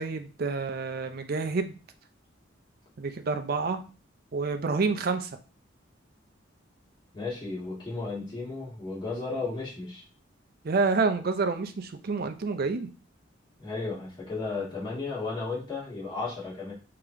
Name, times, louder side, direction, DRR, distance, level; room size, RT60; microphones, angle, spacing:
voice 1, 0.0-1.7 3.0-3.8 4.3-5.3 10.6-12.9, right 4 dB, 50° right, 7 dB, 0.5 m, -28 dB
voice 2, 7.1-10.0 13.6-16.7, left 3 dB, 25° left, -6 dB, 1.5 m, -34 dB
3.4 x 2.9 x 3.6 m, 0.35 s
head